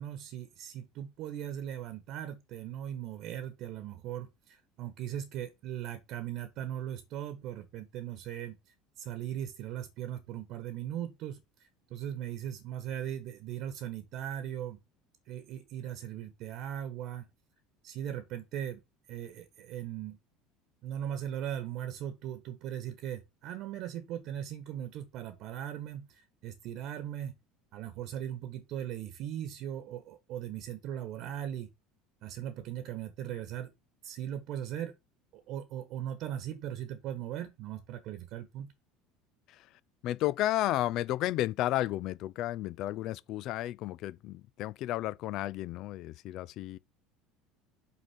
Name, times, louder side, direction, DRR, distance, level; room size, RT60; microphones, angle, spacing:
voice 1, 0.0-8.6 9.0-14.8 15.3-17.3 17.8-18.8 19.1-20.2 20.8-27.3 27.7-31.7 32.2-33.7 34.0-34.9 35.3-38.7, right 10 dB, 55° right, 1.3 m, -39 dB
voice 2, 40.0-46.8, left 15 dB, 55° left, 0.5 m, -32 dB
5.9 x 4.9 x 6.2 m
figure-of-eight pair, 70°, 0 cm